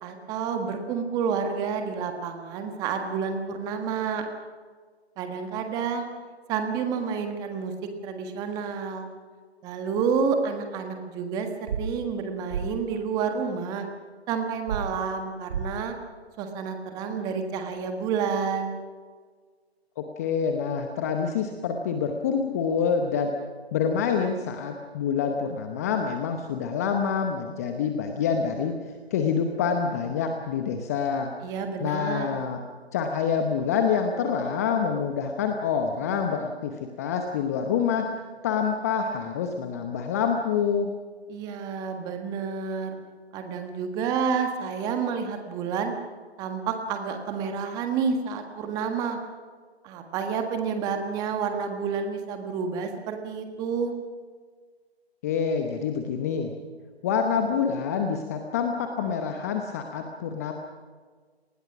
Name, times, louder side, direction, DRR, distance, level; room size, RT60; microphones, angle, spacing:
voice 1, 0.0-4.2 5.2-6.1 6.5-7.7 8.0-9.1 9.6-13.9 14.3-15.9 16.4-18.8 31.4-32.3 41.3-43.0 43.3-45.9 46.4-49.2 49.8-53.9, right 6 dB, 10° right, 5 dB, 1.5 m, -29 dB
sound 1, 11.7-11.8 12.5-12.6 14.7-14.8 15.5-15.7, right 8 dB, 35° right, 2.0 m, -29 dB
voice 2, 20.0-23.3 23.7-28.7 29.1-31.3 31.8-32.6 32.9-38.1 38.4-40.9 55.2-56.5 57.0-60.5, left 6 dB, 15° left, 5 dB, 0.9 m, -26 dB
29.5 x 20.0 x 6.0 m, 1.5 s
figure-of-eight pair, 150°, 33 cm